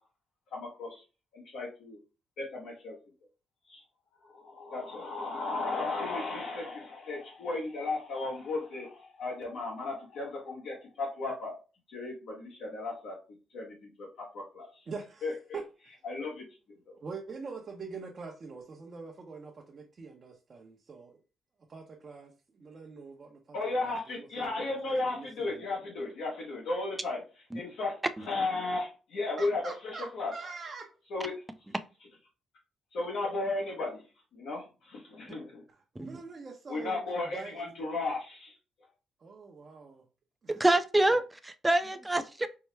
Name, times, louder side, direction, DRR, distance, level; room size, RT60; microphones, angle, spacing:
voice 1, 0.5-1.0 1.3-2.0 2.4-2.9 3.7-3.8 4.3-11.6 11.9-13.1 13.5-13.7 14.3-14.7 15.2-15.3 16.0-16.4 16.9-17.0 23.5-27.2 27.5-27.9 28.3-29.6 30.1-30.3 31.1-31.3 32.9-34.0 34.3-35.6 36.7-38.5, left 3 dB, 75° left, 1.2 m, -34 dB
voice 2, 14.9-15.6 17.0-21.2 21.7-24.6 25.1-25.7 29.4-30.9 35.7-37.7 39.2-40.0 40.4-40.6, right 4 dB, 40° right, 0.7 m, -44 dB
voice 3, 40.5-42.5, right 1 dB, 10° right, 0.4 m, -27 dB
4.5 x 2.1 x 3.3 m
cardioid pair, 90°, 0 cm